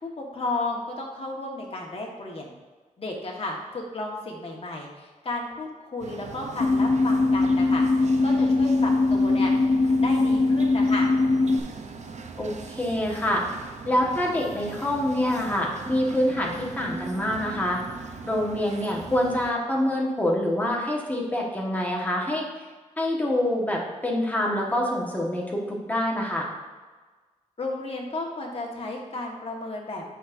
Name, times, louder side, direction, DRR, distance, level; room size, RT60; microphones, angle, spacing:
voice 1, 0.0-2.5 3.0-9.5 9.8-11.1 27.6-30.0, left 2 dB, 45° left, -1 dB, 1.4 m, -33 dB
sound 1, 6.0-19.5, right 4 dB, 60° right, 0.6 m, -40 dB
sound 2, 6.6-11.6, left 3 dB, 65° left, 0.7 m, -21 dB
voice 2, 12.4-13.4 13.9-17.8 18.2-22.4 23.0-26.5, left 1 dB, 10° left, -2 dB, 1.4 m, -26 dB
8.4 x 6.2 x 2.6 m, 1.3 s
wide cardioid pair, 90°, 13 cm